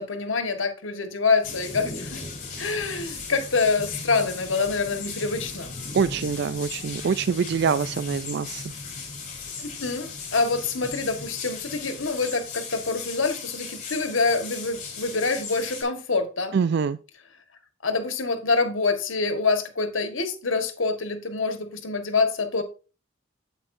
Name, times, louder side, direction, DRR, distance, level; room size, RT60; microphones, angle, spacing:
voice 1, 0.0-2.2 2.6-5.7 9.6-16.6 17.8-22.6, left 4 dB, 90° left, 1.6 m, -26 dB
sound 1, 1.4-15.8, left 4 dB, 40° left, 4.0 m, -37 dB
voice 2, 5.9-8.7 16.5-17.0, right 6 dB, 60° right, 0.4 m, -25 dB
8.7 x 8.1 x 2.7 m
head